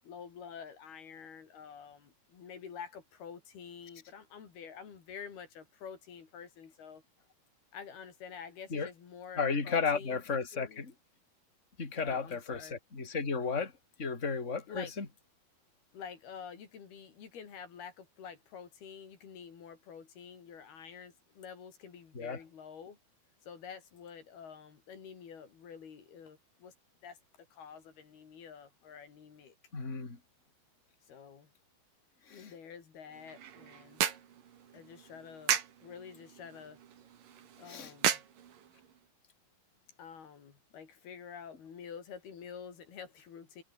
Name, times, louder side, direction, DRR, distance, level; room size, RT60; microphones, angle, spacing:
voice 1, 0.0-7.0 7.7-10.9 12.0-12.8 14.7-14.9 15.9-23.0 23.4-26.7 27.0-27.2 27.5-29.6 31.1-31.5 32.3-34.1 34.7-36.8 37.6-38.2 40.0-43.6, left 7 dB, 85° left, 5.8 m, -48 dB
voice 2, 9.4-10.9 11.8-13.7 14.0-15.1 22.2-22.4 29.7-30.2 32.3-32.4 37.7-37.9, left 5 dB, 20° left, 3.7 m, -33 dB
sound 1, 33.1-39.0, right 9 dB, 65° right, 3.7 m, -36 dB
omnidirectional pair, 4.3 m